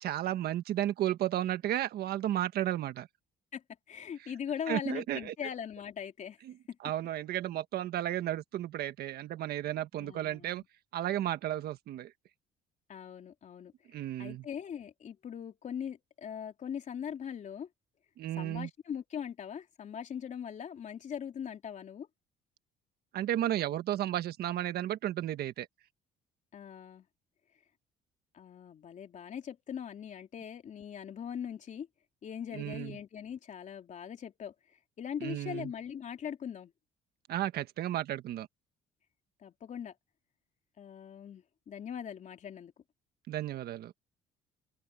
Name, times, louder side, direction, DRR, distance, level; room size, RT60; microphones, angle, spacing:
voice 1, 0.0-3.1 4.7-5.3 6.4-6.5 6.8-10.6 10.9-12.1 13.9-14.4 18.2-18.7 23.1-25.7 32.5-32.9 35.2-35.7 37.3-38.5 43.3-43.9, right 12 dB, 65° right, 1.5 m, -33 dB
voice 2, 3.5-6.4 6.7-6.8 10.0-10.7 12.9-17.7 18.4-22.1 26.5-27.1 28.3-31.9 32.2-34.5 35.0-36.7 39.4-39.9 40.8-42.7, left 8 dB, 45° left, 3.6 m, -41 dB
open air
cardioid pair, 110°, 17 cm